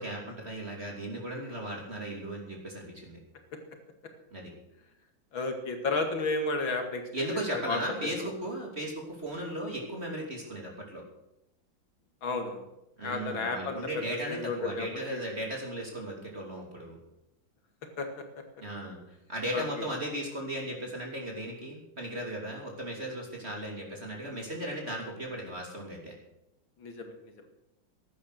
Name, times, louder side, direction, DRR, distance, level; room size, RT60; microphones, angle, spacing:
voice 1, 0.0-3.2 4.3-4.5 7.1-11.0 13.0-17.0 18.6-19.0 19.3-26.1, right 1 dB, 30° right, -1 dB, 3.2 m, -36 dB
voice 2, 5.3-7.8 8.2-8.3 12.2-12.7 13.0-15.2 18.0-18.1 19.5-19.9 26.8-27.1, left 3 dB, 80° left, 5 dB, 2.9 m, -32 dB
15.0 x 11.5 x 6.5 m, 0.87 s
omnidirectional pair, 2.1 m